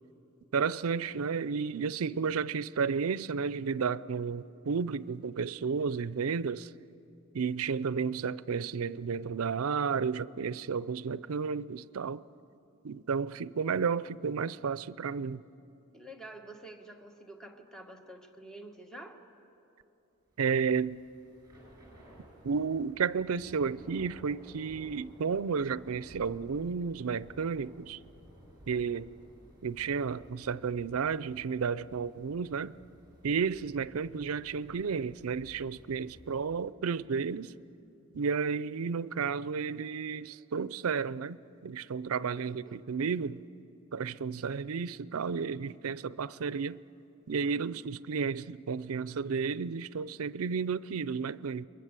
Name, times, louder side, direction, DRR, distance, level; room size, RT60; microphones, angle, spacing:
voice 1, 0.5-6.7 7.3-12.2 12.8-15.4 20.4-21.0 22.4-28.0 28.7-29.1 29.6-32.8 33.2-37.5 38.1-43.4 43.9-46.8 47.3-51.7, right 5 dB, 75° right, 0.5 m, -32 dB
voice 2, 15.9-19.2 42.4-42.8, right 1 dB, 5° left, 1.5 m, -48 dB
Thunder / Rain, 20.3-36.6, equal, 15° right, 7.9 m, -56 dB
29.5 x 22.0 x 8.2 m
head